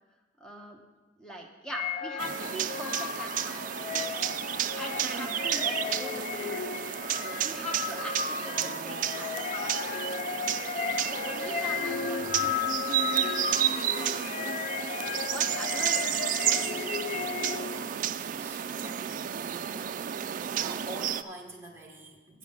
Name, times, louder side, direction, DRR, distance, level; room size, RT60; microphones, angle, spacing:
voice 1, 0.4-0.8 1.2-4.3 4.8-6.6 7.2-10.6 11.0-14.6 14.9-17.6, right 1 dB, 5° left, 0 dB, 1.1 m, -43 dB
sound 1, 1.7-17.9, left 7 dB, 40° left, 0.3 m, -34 dB
sound 2, 2.2-21.2, right 10 dB, 45° right, 0.3 m, -32 dB
voice 2, 18.4-20.0 20.5-22.4, right 1 dB, 15° right, -1 dB, 1.4 m, -46 dB
8.6 x 6.0 x 7.3 m, 1.2 s
head